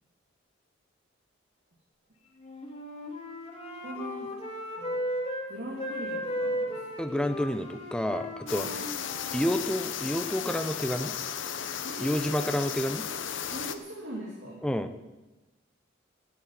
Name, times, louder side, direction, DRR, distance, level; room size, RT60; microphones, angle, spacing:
Wind instrument woodwind instrument, 2.4-5.5 5.8-9.5, equal, 30° left, 2.2 m, -35 dB
voice 1, 3.8-4.3 4.8-5.0 5.5-6.8 7.0-7.2 8.6-8.8 11.8-12.5 13.5-14.6, right 1 dB, 70° right, -4 dB, 3.1 m, -41 dB
voice 2, 7.0-8.7 9.3-11.1 12.0-13.1 14.6-14.9, equal, 5° left, 8 dB, 0.7 m, -29 dB
sound 1, 8.5-13.8, left 8 dB, 75° left, 0.9 m, -35 dB
15.0 x 8.8 x 7.5 m, 1.1 s
head